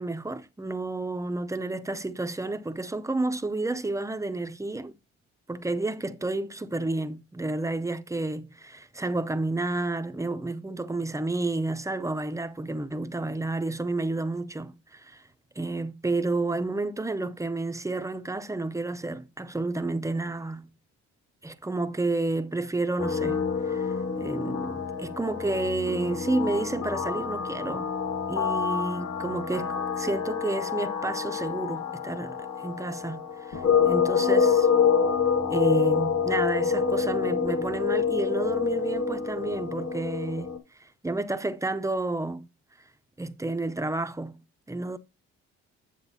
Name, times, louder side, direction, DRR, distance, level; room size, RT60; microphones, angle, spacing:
voice 1, 0.0-4.9 5.5-15.2 15.6-20.7 21.4-27.9 28.3-34.7 35.5-40.5 40.8-42.5 43.2-44.4 44.7-45.0, right 2 dB, 10° right, 0.6 m, -30 dB
sound 1, 23.0-40.6, left 6 dB, 50° left, 1.6 m, -27 dB
8.9 x 7.3 x 2.7 m
cardioid pair, 90°, 30 cm